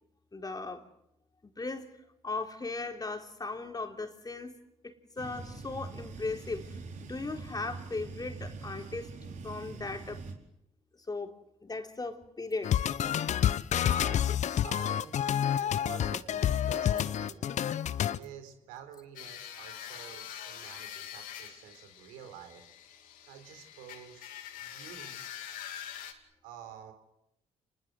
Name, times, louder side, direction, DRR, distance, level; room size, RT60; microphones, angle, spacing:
voice 1, 0.3-0.8 1.6-1.9 2.2-4.6 4.8-9.1 9.4-10.2 11.1-11.4 11.6-12.7, left 3 dB, 25° left, 4.0 m, -37 dB
sound 1, 5.2-10.3, right 3 dB, 60° right, 4.8 m, -43 dB
sound 2, 12.6-18.2, left 10 dB, 55° left, 0.9 m, -28 dB
voice 2, 13.8-14.3 14.6-15.2 15.6-17.4 18.1-22.6 23.3-25.3 26.4-26.9, right 9 dB, 80° right, 4.0 m, -48 dB
sound 3, 19.2-26.1, left 10 dB, 75° left, 2.8 m, -45 dB
30.0 x 20.5 x 7.8 m
hypercardioid pair, 50°, 14 cm